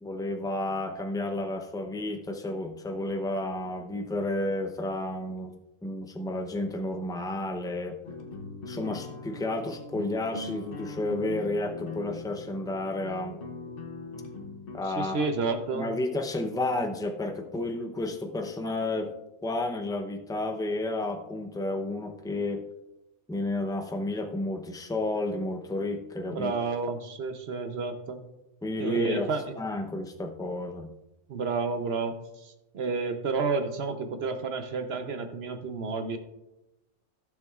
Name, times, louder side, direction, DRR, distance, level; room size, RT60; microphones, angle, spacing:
voice 1, 0.0-5.5 5.8-8.0 8.7-13.4 14.7-15.2 15.7-19.1 19.4-22.7 23.3-26.5 28.6-29.3 29.6-30.9, left 2 dB, 5° left, 5 dB, 0.4 m, -31 dB
sound 1, 8.0-14.8, left 3 dB, 50° left, 1.0 m, -41 dB
voice 2, 14.9-15.9 26.3-28.2 28.8-29.5 31.3-36.2, right 4 dB, 55° right, 8 dB, 1.0 m, -30 dB
15.0 x 7.0 x 2.4 m, 0.95 s
omnidirectional pair, 1.3 m